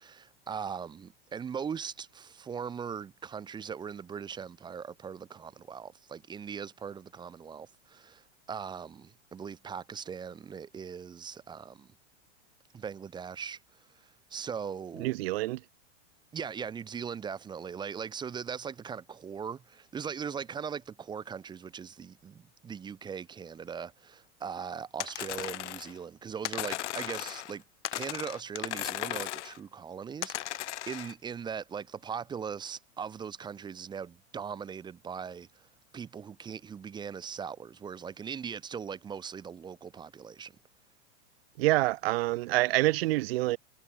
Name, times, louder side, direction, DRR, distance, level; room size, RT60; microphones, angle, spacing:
voice 1, 0.0-11.9 12.7-15.1 16.3-27.6 27.9-35.7 35.9-40.5, right 7 dB, 10° right, 1.2 m, -40 dB
voice 2, 15.0-15.6 41.6-43.6, right 19 dB, 55° right, 0.6 m, -27 dB
sound 1, 25.0-26.0 26.4-27.6 27.8-29.6 30.2-31.1, left 14 dB, 75° left, 1.5 m, -36 dB
supercardioid pair, 160°, 36 cm